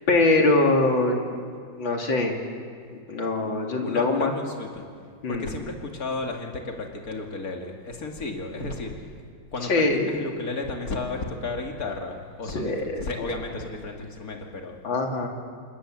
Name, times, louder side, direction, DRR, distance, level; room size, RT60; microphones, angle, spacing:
voice 1, 0.1-1.4 1.8-2.4 3.1-4.3 5.2-5.5 9.7-10.2 12.5-13.0 14.8-15.3, left 2 dB, 75° left, 2 dB, 3.2 m, -23 dB
voice 2, 3.8-4.9 5.3-9.1 9.5-14.8, left 3 dB, 45° left, 2 dB, 2.8 m, -33 dB
27.0 x 20.5 x 7.6 m, 2.2 s
omnidirectional pair, 2.2 m